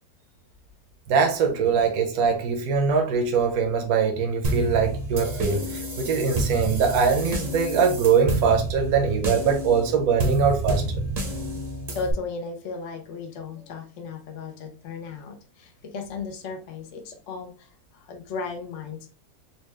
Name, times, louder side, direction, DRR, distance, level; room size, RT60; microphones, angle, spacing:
voice 1, 1.1-11.0, right 6 dB, 80° right, 1.2 m, -22 dB
sound 1, 4.4-12.1, right 1 dB, 40° right, 0.7 m, -29 dB
voice 2, 11.9-19.1, left 4 dB, 60° left, 1.0 m, -35 dB
4.3 x 2.3 x 3.1 m
omnidirectional pair, 1.6 m